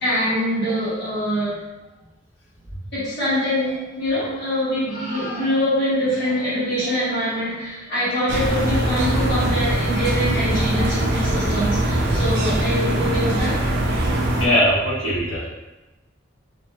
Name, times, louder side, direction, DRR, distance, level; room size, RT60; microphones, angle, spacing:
voice 1, 0.0-1.6 2.9-13.6, equal, 55° left, -10 dB, 1.1 m, -24 dB
sound 1, 8.3-14.5, right 1 dB, 60° right, 0.4 m, -22 dB
voice 2, 14.4-15.5, equal, 35° left, -12 dB, 1.1 m, -20 dB
2.7 x 2.4 x 2.3 m, 1.1 s
head